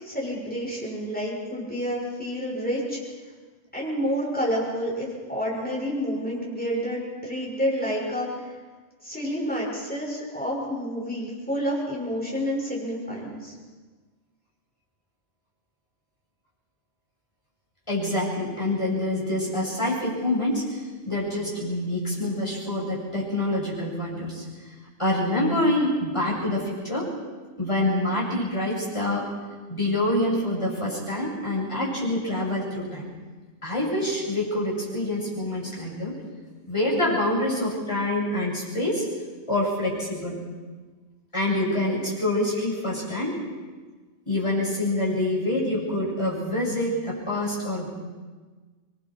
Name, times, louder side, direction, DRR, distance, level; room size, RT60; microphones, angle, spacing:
voice 1, 0.0-3.0 3.7-8.4 9.0-13.5, equal, 5° left, -4 dB, 6.4 m, -29 dB
voice 2, 17.9-24.4 25.0-27.1 27.6-29.3 29.7-33.1 33.6-36.2 36.7-39.1 39.5-40.4 41.3-43.4 44.3-47.9, left 1 dB, 25° left, -6 dB, 7.3 m, -26 dB
26.5 x 22.5 x 4.7 m, 1.4 s
omnidirectional pair, 1.2 m